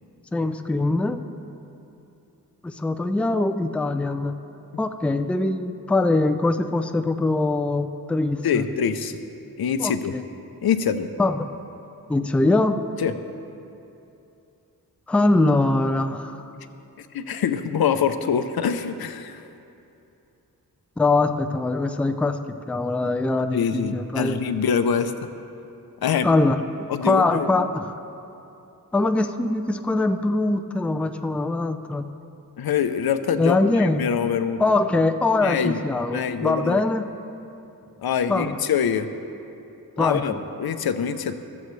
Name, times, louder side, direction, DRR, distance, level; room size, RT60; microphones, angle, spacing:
voice 1, 0.3-1.2 2.6-4.4 4.8-8.7 9.8-10.2 11.2-11.5 12.1-12.8 15.1-16.4 21.0-22.4 22.7-24.4 26.2-26.6 27.0-27.9 28.9-32.1 33.4-34.1 34.6-37.0 38.3-38.5 40.0-40.2, left 2 dB, 5° left, 7 dB, 0.3 m, -22 dB
voice 2, 8.4-9.2 9.6-10.1 10.6-11.1 13.0-13.1 17.0-19.4 23.5-25.1 26.0-26.3 26.9-27.6 32.6-34.6 35.4-35.8 36.1-36.8 38.0-39.1 40.0-41.4, left 7 dB, 85° left, 10 dB, 0.7 m, -24 dB
14.0 x 14.0 x 3.2 m, 2.8 s
wide cardioid pair, 135°, 36 cm